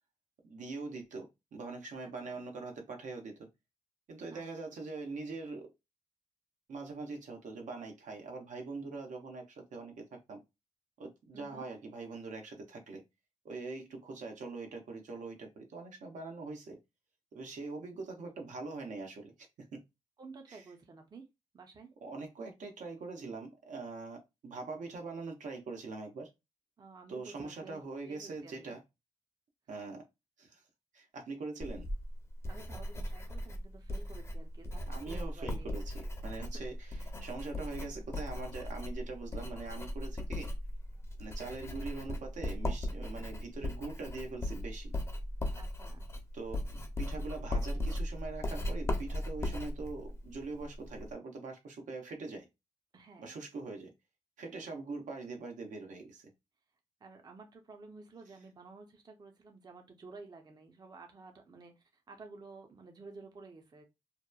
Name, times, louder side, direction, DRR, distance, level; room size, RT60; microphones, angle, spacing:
voice 1, 0.4-3.5 4.1-5.7 6.7-10.4 11.0-13.0 13.4-16.8 17.3-19.8 20.5-20.6 22.0-26.3 27.1-28.8 29.7-30.0 30.4-30.6 30.9-31.9 34.9-40.5 41.2-44.9 46.3-52.4 53.2-53.9 54.4-56.3, right 3 dB, 80° right, 0.7 m, -43 dB
voice 2, 2.0-2.4 4.3-4.7 11.3-11.6 20.2-21.2 21.5-21.9 26.8-28.7 32.5-35.7 36.2-36.5 45.6-46.0 52.9-53.3 57.0-63.8, right 4 dB, 35° right, 0.5 m, -52 dB
Writing, 31.6-51.1, left 1 dB, 20° left, 0.5 m, -38 dB
2.8 x 2.1 x 2.2 m
wide cardioid pair, 105°, 13 cm